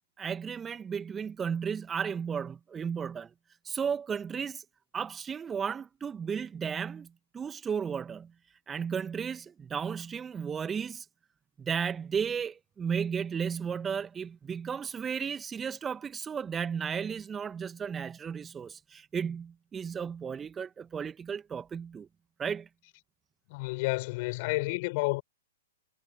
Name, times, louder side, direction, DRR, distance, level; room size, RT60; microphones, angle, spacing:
voice 1, 0.2-3.3 3.6-4.6 4.9-7.1 7.3-8.3 8.7-11.1 11.6-22.1 22.4-22.7, right 7 dB, 15° right, 1.7 m, -34 dB
voice 2, 23.5-25.2, left 25 dB, 40° left, 6.3 m, -30 dB
figure-of-eight pair, 110°, 0 cm